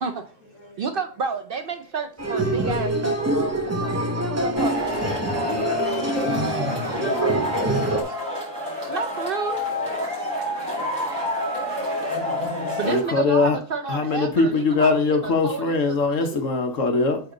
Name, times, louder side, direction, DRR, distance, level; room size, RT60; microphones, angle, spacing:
voice 1, 0.8-4.0 4.3-5.0 5.5-5.6 8.9-9.6 12.8-15.8 16.2-16.3, right 5 dB, 55° right, 7 dB, 0.7 m, -30 dB
sound 1, 2.2-8.0, right 2 dB, 15° right, 0.6 m, -25 dB
Male speech man speaking / Shout / Clapping, 4.6-13.0, left 1 dB, 35° right, 3.9 m, -28 dB
voice 2, 5.2-8.1, left 2 dB, 40° left, 2 dB, 1.5 m, -33 dB
voice 3, 12.8-13.6 13.9-17.2, left 4 dB, 80° left, 5 dB, 1.5 m, -21 dB
8.2 x 3.5 x 3.8 m, 0.40 s
omnidirectional pair, 1.3 m